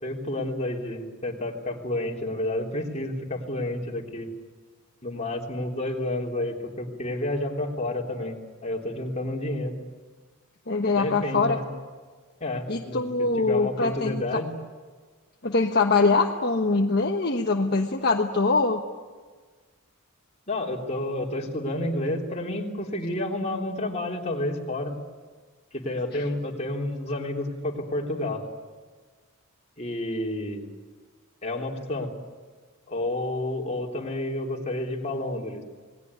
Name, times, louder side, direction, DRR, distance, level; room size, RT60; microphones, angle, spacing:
voice 1, 0.0-4.3 5.0-9.7 10.9-11.7 12.4-14.5 20.5-24.9 25.7-28.4 29.8-30.7 31.4-32.1 32.9-35.6, left 1 dB, 30° left, 0 dB, 3.4 m, -30 dB
voice 2, 10.7-11.6 12.7-14.4 15.4-18.8, left 3 dB, 45° left, 2 dB, 1.3 m, -23 dB
28.0 x 20.0 x 9.7 m, 1.4 s
head